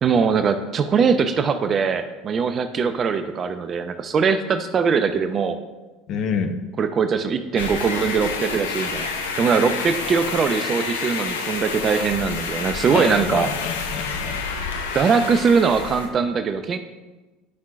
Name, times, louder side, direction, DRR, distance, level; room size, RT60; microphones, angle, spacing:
voice 1, 0.0-5.6 6.8-9.1 9.4-13.5 14.9-16.8, right 5 dB, 35° right, 10 dB, 0.6 m, -21 dB
voice 2, 6.1-6.5 12.9-14.4, left 6 dB, 50° left, 6 dB, 0.9 m, -27 dB
sound 1, 7.6-16.1, left 5 dB, 80° left, 0.8 m, -29 dB
11.5 x 5.6 x 2.5 m, 1.2 s
figure-of-eight pair, 70°, 0 cm